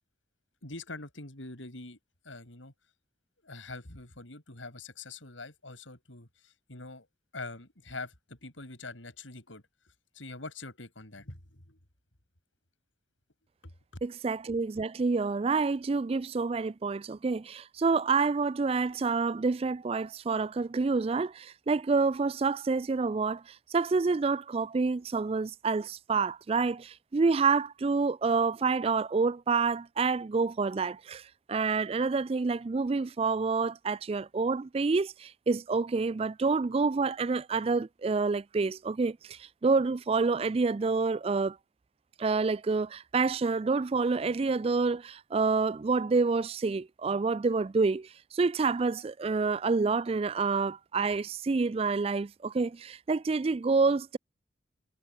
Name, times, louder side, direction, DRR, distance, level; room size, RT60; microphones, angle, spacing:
voice 1, 0.6-2.0 2.2-2.7 3.4-7.1 7.3-9.6 10.1-11.8, left 3 dB, 85° left, 5.3 m, -44 dB
voice 2, 14.0-41.6 42.2-54.2, right 4 dB, 30° right, 0.3 m, -28 dB
head